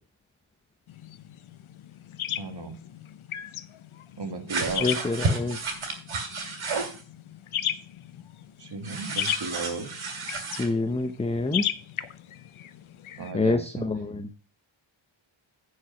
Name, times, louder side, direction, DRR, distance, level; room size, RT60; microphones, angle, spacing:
sound 1, 0.9-13.3, left 11 dB, 80° left, 0.8 m, -36 dB
voice 1, 2.4-2.7 4.2-4.9 8.6-9.9 13.2-13.6, right 3 dB, 55° right, 6 dB, 1.9 m, -34 dB
sound 2, 4.5-7.0 8.8-10.7, right 3 dB, 80° right, 2.6 m, -31 dB
voice 2, 4.8-5.7 10.6-11.6 13.3-14.3, left 3 dB, 15° left, 8 dB, 0.6 m, -27 dB
10.0 x 5.0 x 5.4 m, 0.39 s
wide cardioid pair, 100°, 48 cm